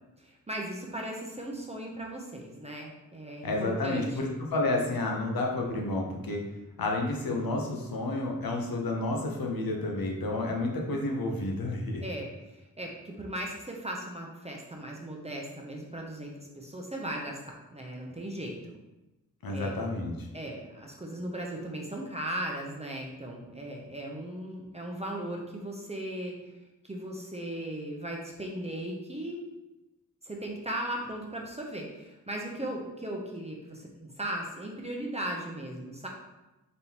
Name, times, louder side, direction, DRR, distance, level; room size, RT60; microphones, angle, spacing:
voice 1, 0.2-4.2 12.0-18.6 19.5-19.8 20.3-26.5 26.8-29.5 30.2-36.1, right 1 dB, 20° right, -1 dB, 0.6 m, -37 dB
voice 2, 3.4-6.4 6.8-12.0 19.4-20.3, left 2 dB, 85° left, 1 dB, 0.8 m, -30 dB
4.1 x 3.5 x 2.9 m, 1.0 s
wide cardioid pair, 75°, 34 cm